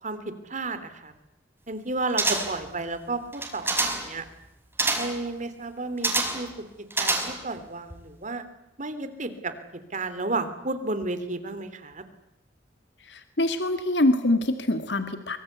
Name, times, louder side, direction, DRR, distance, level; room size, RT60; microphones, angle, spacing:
voice 1, 0.4-1.1 1.7-4.2 5.0-6.5 7.0-8.4 8.8-9.5 9.9-12.0, right 2 dB, 45° right, 11 dB, 3.2 m, -32 dB
sound 1, 2.2-2.7 3.3-4.1 4.8-5.2 6.0-6.5 6.9-7.6 7.9-8.0, right 2 dB, 15° right, 5.2 m, -26 dB
voice 2, 13.0-15.4, left 1 dB, 70° left, 8 dB, 2.2 m, -24 dB
24.5 x 24.0 x 8.2 m, 0.92 s
head